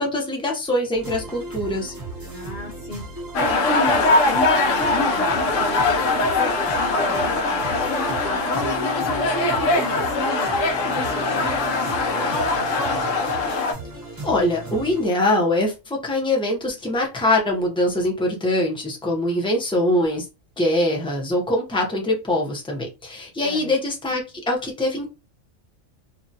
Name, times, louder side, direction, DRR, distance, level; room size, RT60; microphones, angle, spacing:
voice 1, 0.0-1.9 14.2-20.2 20.6-25.1, left 1 dB, 5° left, 0 dB, 0.4 m, -23 dB
sound 1, 0.9-15.0, right 1 dB, 20° right, 0.8 m, -36 dB
voice 2, 2.2-8.5 8.7-13.2 23.4-23.7, left 1 dB, 60° left, -1 dB, 1.1 m, -34 dB
sound 2, 3.3-13.7, left 3 dB, 85° left, 1.0 m, -21 dB
2.6 x 2.2 x 2.6 m, 0.27 s
omnidirectional pair, 1.3 m